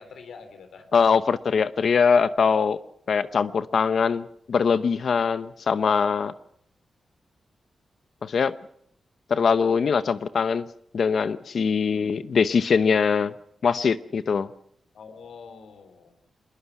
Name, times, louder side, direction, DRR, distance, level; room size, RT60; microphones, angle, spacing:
voice 1, 0.0-0.9 11.6-11.9 14.9-16.1, left 5 dB, 85° left, 9 dB, 3.6 m, -45 dB
voice 2, 0.9-2.8 3.1-6.3 8.2-8.5 9.3-10.7 10.9-13.3 13.6-14.5, left 6 dB, 65° left, 14 dB, 0.8 m, -22 dB
21.5 x 21.5 x 5.9 m, 0.70 s
cardioid pair, 85°, 0 cm